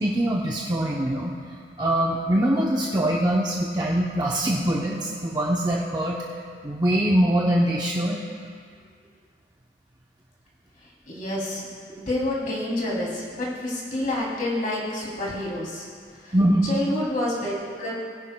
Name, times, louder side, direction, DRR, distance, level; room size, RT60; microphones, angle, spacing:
voice 1, 0.0-6.2 6.6-8.2 16.3-16.7, right 1 dB, 25° right, -3 dB, 0.7 m, -23 dB
voice 2, 10.8-15.9 16.1-16.3 16.6-17.9, left 1 dB, 50° left, -5 dB, 2.8 m, -29 dB
20.0 x 11.0 x 2.2 m, 2.1 s
head